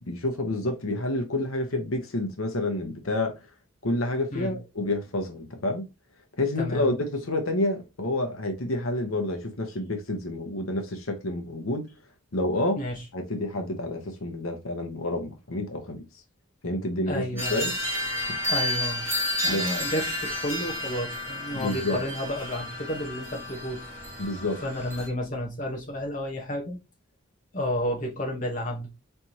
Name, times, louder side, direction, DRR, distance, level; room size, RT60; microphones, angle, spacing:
voice 1, 0.1-3.4 3.8-5.9 6.4-11.9 12.3-12.8 13.1-16.0 16.6-17.7 19.5-19.6 21.6-22.0 24.2-24.6, left 1 dB, 80° left, 1.0 m, -29 dB
voice 2, 6.6-6.9 12.8-13.0 17.1-17.7 18.5-19.1 19.4-23.8 24.6-26.8 27.5-28.9, left 1 dB, 40° left, 1.1 m, -31 dB
sound 1, 17.4-25.1, left 1 dB, 15° right, 2.0 m, -31 dB
4.4 x 3.4 x 2.8 m
head